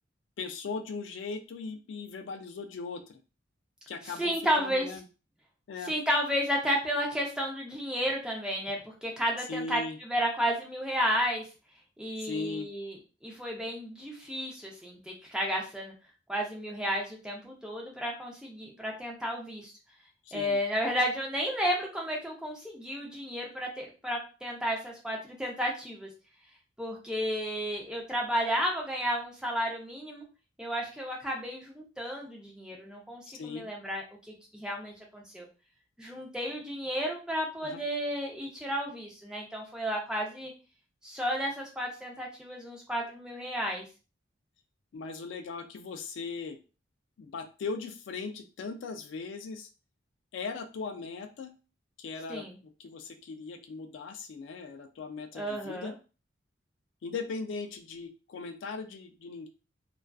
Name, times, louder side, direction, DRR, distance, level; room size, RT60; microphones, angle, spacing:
voice 1, 0.4-3.2 3.9-5.0 5.7-5.9 9.5-10.0 12.2-12.7 20.3-20.6 33.4-33.7 37.6-37.8 44.9-46.6 47.2-49.7 50.3-51.5 52.0-55.9 57.0-59.5, left 4 dB, 65° left, 7 dB, 0.3 m, -39 dB
voice 2, 4.0-4.9 5.8-11.5 12.0-12.9 13.2-15.9 16.3-19.7 20.3-26.1 26.8-30.2 30.6-35.5 36.0-40.5 41.0-43.9 52.3-52.6 55.3-55.9, equal, 5° right, -1 dB, 0.5 m, -32 dB
2.3 x 2.3 x 2.3 m, 0.33 s
head